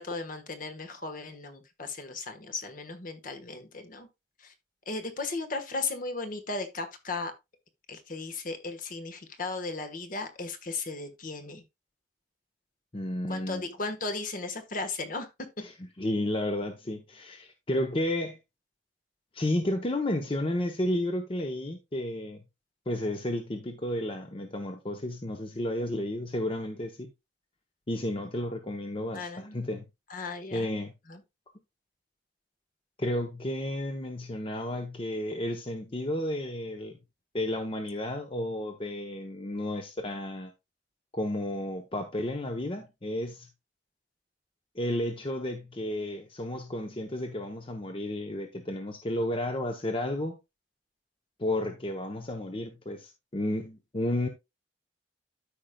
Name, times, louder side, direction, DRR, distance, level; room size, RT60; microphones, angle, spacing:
voice 1, 0.0-4.1 4.4-4.5 4.9-7.3 7.9-11.6 13.3-15.3 28.4-28.5 29.1-29.6 30.1-30.7 31.1-31.2, left 3 dB, 50° left, 1.3 m, -36 dB
voice 2, 12.9-13.6 15.6-15.7 16.0-18.4 19.3-22.4 22.9-27.1 27.9-29.8 30.5-30.9 33.0-37.0 37.3-40.5 41.1-43.5 44.7-50.4 51.4-54.3, left 1 dB, 30° left, 0.8 m, -32 dB
13.0 x 5.2 x 2.3 m
head